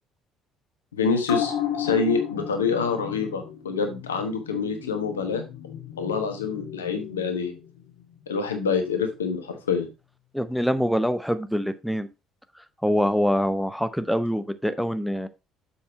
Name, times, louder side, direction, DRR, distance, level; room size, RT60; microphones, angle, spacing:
voice 1, 0.9-5.4 6.0-7.5 8.3-9.9, left 5 dB, 80° left, 6 dB, 1.2 m, -26 dB
sound 1, 1.2-8.2 8.5-8.6, left 10 dB, 60° left, 1.3 m, -34 dB
voice 2, 10.3-12.1 12.8-15.3, equal, ahead, 11 dB, 0.8 m, -24 dB
7.1 x 5.5 x 4.1 m, 0.26 s
figure-of-eight pair, 50°, 0 cm